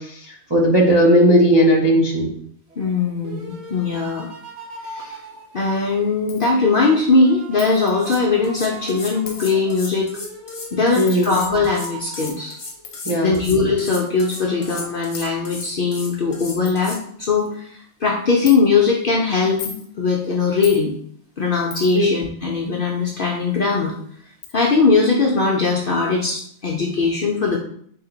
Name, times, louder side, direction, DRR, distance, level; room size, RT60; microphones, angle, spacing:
voice 1, 0.0-2.3 10.9-11.3 13.1-13.4 21.9-22.1, equal, 40° right, -5 dB, 0.3 m, -16 dB
sound 1, 2.7-6.3 6.7-12.9 13.7-14.8, right 3 dB, 60° right, 1.0 m, -39 dB
voice 2, 2.8-4.3 4.8-5.2 5.5-10.1 10.7-12.6 13.2-20.9 21.4-23.9 24.5-27.6, left 4 dB, 60° left, -2 dB, 0.5 m, -20 dB
Coin (dropping), 6.3-6.5 7.6-7.9 9.3-9.5 11.1-11.4 12.8-13.0 14.0-14.1 14.8-14.9 15.1-15.3 15.9-16.0 16.3-16.4 16.7-16.8 17.2-17.5 18.5-18.6 19.4-19.9 20.6-20.8 21.7-22.1 23.7-23.8 24.4-24.6, left 6 dB, 85° left, 1.1 m, -36 dB
sound 2, 7.7-7.8 8.0-17.0, left 3 dB, 35° left, 0.9 m, -35 dB
4.1 x 2.8 x 3.8 m, 0.64 s
omnidirectional pair, 1.5 m